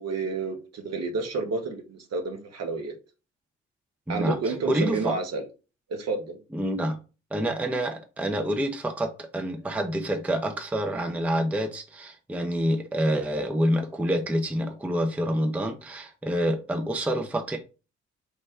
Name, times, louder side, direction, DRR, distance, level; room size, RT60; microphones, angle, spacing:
voice 1, 0.0-2.9 4.1-5.5 5.9-6.4, right 3 dB, 50° right, 0.9 m, -30 dB
voice 2, 4.1-5.2 6.5-7.0 7.3-17.6, equal, 5° right, 0.5 m, -27 dB
3.3 x 2.1 x 3.4 m
figure-of-eight pair, 40°, 34 cm